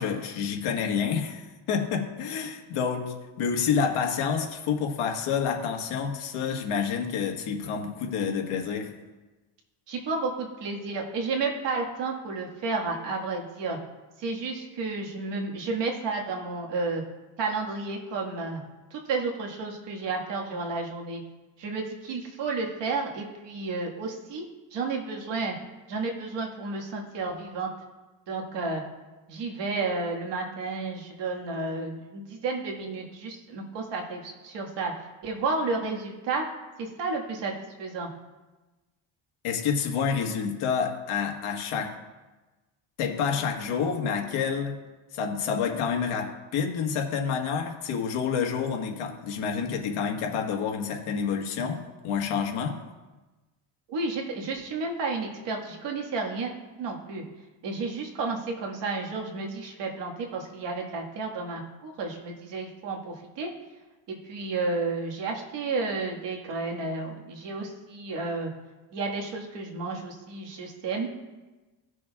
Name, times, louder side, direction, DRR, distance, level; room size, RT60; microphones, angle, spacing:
voice 1, 0.0-8.9 39.4-42.0 43.0-44.7 45.1-52.8, left 6 dB, 85° left, 2 dB, 1.5 m, -28 dB
voice 2, 9.9-13.8 14.2-17.0 17.4-18.6 18.9-21.2 21.6-24.4 24.7-25.5 25.9-27.7 28.3-28.8 29.3-34.9 35.2-36.4 36.8-37.5 37.8-38.1 53.9-56.5 56.8-57.2 57.6-63.5 64.1-68.5 68.9-71.1, right 3 dB, 60° right, 0 dB, 1.7 m, -31 dB
16.5 x 6.4 x 2.3 m, 1.2 s
cardioid pair, 165°, 48 cm